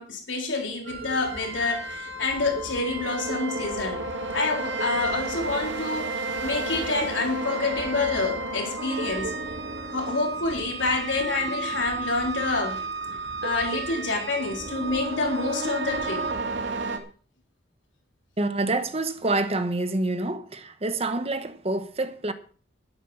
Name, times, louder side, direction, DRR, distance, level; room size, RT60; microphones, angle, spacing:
voice 1, 0.0-4.0 4.3-9.3 9.9-12.8 13.4-16.2, left 3 dB, 85° left, 3.9 m, -27 dB
sound 1, 0.8-17.0, right 2 dB, 85° right, 2.1 m, -32 dB
voice 2, 18.4-22.3, right 2 dB, 35° right, 1.2 m, -27 dB
12.0 x 11.0 x 5.7 m
head